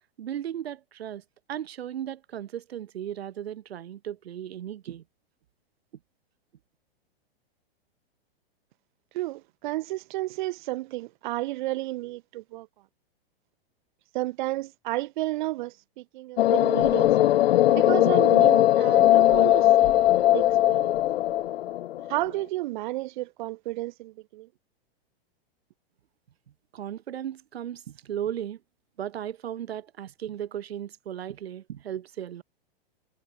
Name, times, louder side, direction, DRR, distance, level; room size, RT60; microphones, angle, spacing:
voice 1, 0.2-1.2 1.5-5.0 26.7-28.6 29.0-32.4, right 10 dB, 80° right, 3.1 m, -36 dB
voice 2, 9.1-12.7 14.1-17.2 17.7-20.9 22.1-24.5, right 18 dB, 50° right, 2.0 m, -32 dB
sound 1, 16.4-22.2, left 14 dB, 80° left, 0.6 m, -20 dB
hypercardioid pair, 150°, 30 cm